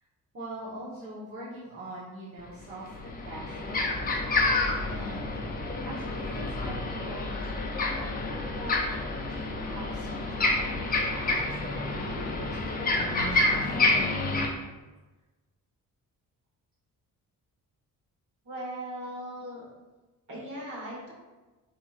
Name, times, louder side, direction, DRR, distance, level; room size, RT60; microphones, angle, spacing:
voice 1, 0.3-3.9 4.9-5.4 5.7-7.7 8.5-9.0 9.3-14.0, right 1 dB, 40° right, -10 dB, 1.0 m, -43 dB
sound 1, 2.4-2.5 2.9-14.5, left 2 dB, 25° left, 0.4 m, -29 dB
voice 2, 18.4-19.6 20.3-21.1, right 1 dB, 55° right, -5 dB, 1.5 m, -38 dB
4.3 x 2.8 x 2.4 m, 1.2 s
cardioid pair, 125°, 35 cm